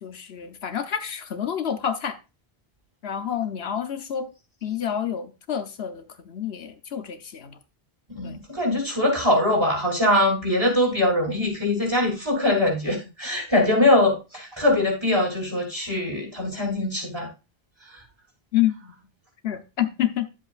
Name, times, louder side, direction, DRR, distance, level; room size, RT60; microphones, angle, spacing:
voice 1, 0.0-2.2 3.0-4.3 4.6-7.6 8.2-8.4 18.5-19.0 19.4-20.3, left 10 dB, 75° left, 1.1 m, -28 dB
voice 2, 8.1-17.3 17.9-18.0, left 1 dB, 25° right, 3.4 m, -22 dB
11.5 x 7.5 x 2.5 m
omnidirectional pair, 1.1 m